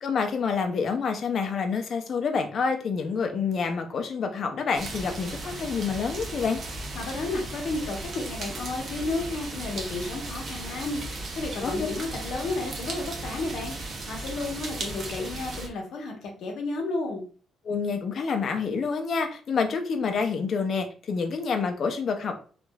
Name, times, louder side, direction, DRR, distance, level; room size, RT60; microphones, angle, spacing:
voice 1, 0.0-6.6 11.6-11.9 17.6-22.3, left 5 dB, 55° left, 6 dB, 0.5 m, -28 dB
sound 1, 4.7-15.7, right 2 dB, 50° right, 0.7 m, -36 dB
voice 2, 7.0-11.0 11.3-17.2, left 2 dB, 75° left, 1 dB, 0.9 m, -32 dB
3.2 x 2.4 x 2.2 m, 0.39 s
cardioid pair, 90°, 0 cm